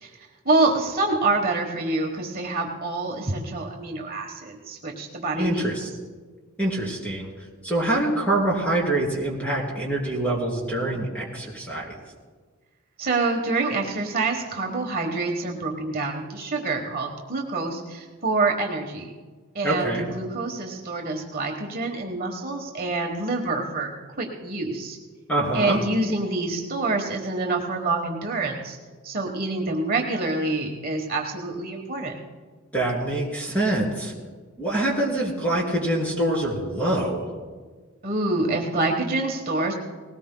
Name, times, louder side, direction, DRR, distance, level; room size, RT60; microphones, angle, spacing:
voice 1, 0.0-5.7 13.0-19.1 19.5-23.9 24.2-25.0 25.5-28.8 29.0-32.2 38.0-39.7, right 3 dB, 45° right, 1 dB, 1.3 m, -26 dB
voice 2, 5.3-5.9 6.6-7.3 7.6-12.0 19.6-20.1 25.3-25.8 32.7-34.1 34.6-37.3, right 1 dB, 5° left, -1 dB, 3.0 m, -25 dB
20.0 x 17.5 x 2.2 m, 1.4 s
head